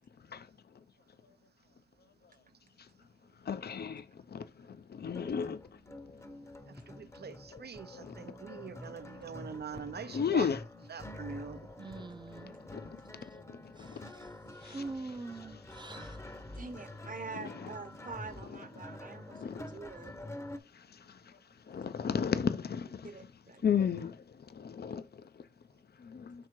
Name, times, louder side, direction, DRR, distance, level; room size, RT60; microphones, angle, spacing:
voice 1, 3.5-4.0 4.3-4.4 5.0-5.6 8.1-8.2 10.0-10.6 12.7-12.8 14.7-14.8 17.3-17.7 19.4-19.6 21.7-23.0 23.6-24.1 24.6-25.0 26.1-26.3, left 7 dB, 80° left, 0.4 m, -32 dB
sound 1, 5.1-20.6, left 1 dB, 15° left, 0.6 m, -48 dB
voice 2, 6.7-10.5 10.9-11.7, right 6 dB, 85° right, 0.5 m, -44 dB
voice 3, 11.8-12.5 13.2-13.3 13.8-14.3 14.6-16.3, right 3 dB, 30° right, 0.5 m, -44 dB
voice 4, 16.5-20.3 23.0-23.7, right 4 dB, 55° right, 0.8 m, -45 dB
6.2 x 3.6 x 4.4 m
wide cardioid pair, 75°, 16 cm